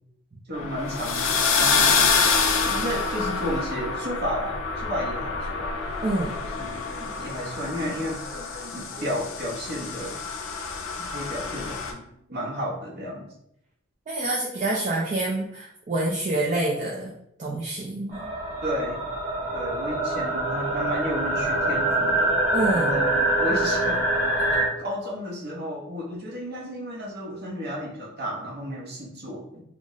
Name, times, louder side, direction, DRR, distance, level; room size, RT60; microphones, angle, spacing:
sound 1, 0.5-11.9, left 5 dB, 75° left, 0.4 m, -27 dB
voice 1, 0.5-2.0 2.6-5.7 6.4-10.2 11.1-13.3 18.6-19.0 19.5-22.4 22.7-24.0 24.5-29.6, equal, 50° right, -4 dB, 0.8 m, -33 dB
voice 2, 6.0-6.4 14.1-17.1 17.4-18.3 22.5-22.9, right 2 dB, 35° right, -4 dB, 0.4 m, -27 dB
sound 2, 18.1-24.6, right 1 dB, 10° right, 0.8 m, -25 dB
2.4 x 2.0 x 3.8 m, 0.78 s
head